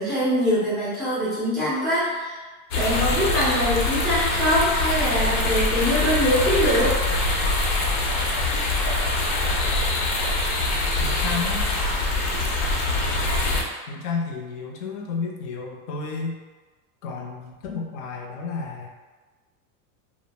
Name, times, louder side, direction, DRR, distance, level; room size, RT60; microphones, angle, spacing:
voice 1, 0.0-2.4 2.7-6.9, equal, ahead, -13 dB, 0.3 m, -23 dB
sound 1, 2.7-13.6, left 2 dB, 90° left, 0.8 m, -23 dB
voice 2, 11.0-11.7 13.9-16.4 17.0-18.9, left 4 dB, 55° left, 0 dB, 0.6 m, -31 dB
2.4 x 2.0 x 3.2 m, 1.3 s
supercardioid pair, 155°, 45 cm